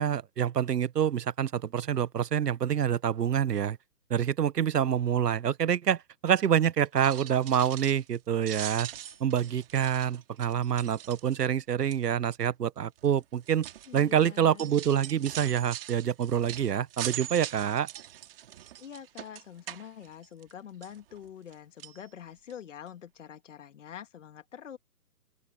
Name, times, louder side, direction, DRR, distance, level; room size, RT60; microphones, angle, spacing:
voice 1, 0.0-3.8 4.1-8.9 9.2-13.7 13.9-17.9, right 9 dB, 70° right, 0.9 m, -27 dB
sound 1, 6.9-8.2 8.4-11.6 11.9-12.3 13.0-20.5 20.8-21.5 21.8-22.0 22.5-22.6 22.9-23.0, right 12 dB, 35° right, 2.2 m, -42 dB
voice 2, 13.9-14.7 18.8-24.8, left 9 dB, 45° left, 2.5 m, -45 dB
open air
hypercardioid pair, 150°, 49 cm